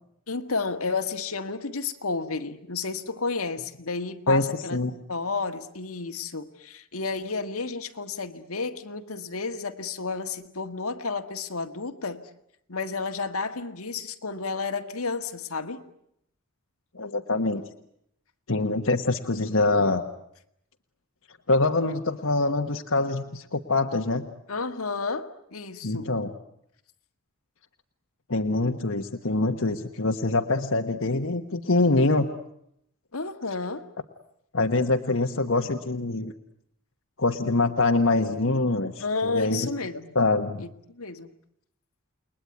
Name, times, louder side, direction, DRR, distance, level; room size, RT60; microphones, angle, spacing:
voice 1, 0.3-4.8 5.1-12.3 12.7-15.8 24.5-26.1 33.1-33.8 39.0-40.2 40.6-41.3, left 4 dB, 85° left, 7 dB, 1.8 m, -31 dB
voice 2, 16.9-17.6 18.5-20.1 21.5-24.2 25.8-26.3 28.3-32.3 34.5-36.3 37.2-39.6 40.1-40.6, left 2 dB, 70° left, 4 dB, 1.4 m, -24 dB
29.5 x 21.5 x 9.5 m, 0.76 s
head